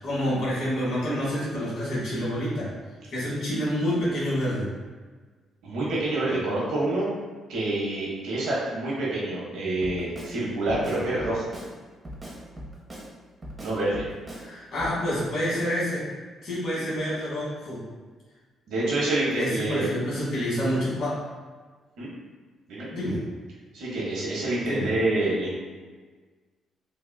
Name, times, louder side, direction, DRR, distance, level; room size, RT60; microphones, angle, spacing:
voice 1, 0.0-2.7 3.1-4.7 14.4-16.0 16.4-17.8 19.3-21.1 22.9-23.2 24.6-24.9, equal, 60° left, -8 dB, 1.3 m, -28 dB
voice 2, 5.6-7.1 7.5-11.5 13.6-14.0 18.7-19.9 22.0-22.1 22.7-22.9 23.7-25.5, right 2 dB, 85° right, -6 dB, 0.8 m, -27 dB
Drum kit, 9.8-10.4 10.7-11.7 12.0-13.1 13.4-14.5 14.8-15.0, equal, 25° right, 0.7 m, -40 dB
3.4 x 2.3 x 2.2 m, 1.4 s
cardioid pair, 90°, 0 cm